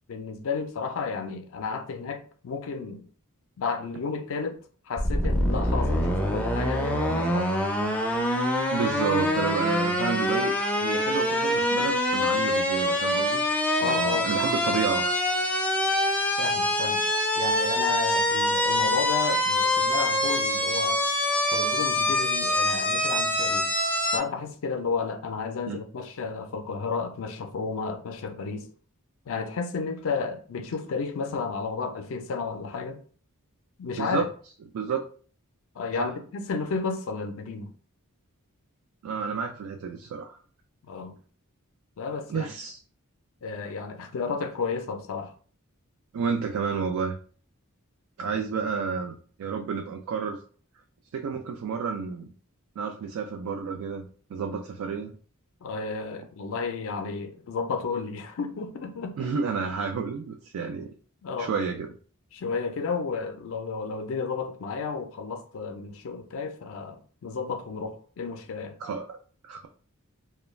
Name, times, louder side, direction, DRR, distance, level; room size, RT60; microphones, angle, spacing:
voice 1, 0.1-3.0 3.6-4.6 4.9-7.7 13.8-14.3 16.4-17.0 17.3-21.0 21.5-23.7 24.1-28.7 29.3-33.0 33.8-34.3 35.7-37.7 40.8-41.1 42.0-42.5 43.4-45.3 55.6-59.3 61.2-61.5 62.3-68.8, left 5 dB, 65° left, 0.4 m, -32 dB
sound 1, 5.0-24.2, left 1 dB, 5° left, 0.4 m, -25 dB
voice 2, 8.7-10.5 10.8-13.4 13.8-15.2 25.7-25.8 34.0-34.3 34.7-35.0 36.0-36.1 39.0-40.4 42.3-42.8 46.1-47.2 48.2-49.1 49.4-50.4 51.1-52.3 52.8-55.1 59.2-60.9 61.4-61.9 68.8-69.2 69.4-69.7, right 5 dB, 70° right, 0.3 m, -30 dB
2.3 x 2.1 x 3.1 m
head